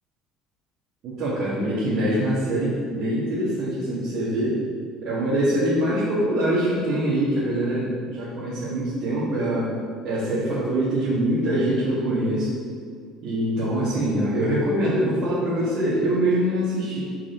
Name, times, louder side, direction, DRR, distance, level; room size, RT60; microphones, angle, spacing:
voice 1, 1.0-4.6 5.0-9.7 10.0-12.5 13.2-17.0, right 1 dB, 50° right, -9 dB, 1.7 m, -24 dB
6.2 x 4.8 x 3.9 m, 2.1 s
figure-of-eight pair, 60°, 0 cm